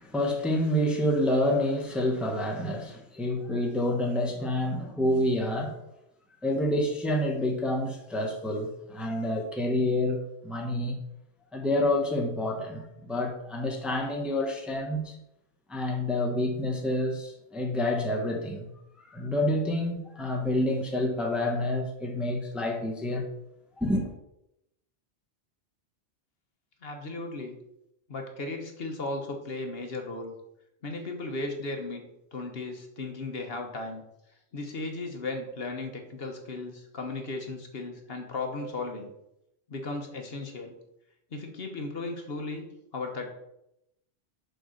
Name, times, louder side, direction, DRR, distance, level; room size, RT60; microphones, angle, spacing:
voice 1, 0.0-5.8 6.4-11.0 11.5-15.2 15.7-18.7 19.1-23.2 23.8-24.1, left 1 dB, ahead, 0.9 m, -28 dB
voice 2, 26.8-27.6 28.1-30.3 30.8-32.1 32.3-34.0 34.5-39.1 39.7-40.7 41.3-42.7 42.9-43.3, left 2 dB, 55° left, 1.3 m, -36 dB
6.8 x 3.9 x 6.3 m
omnidirectional pair, 1.2 m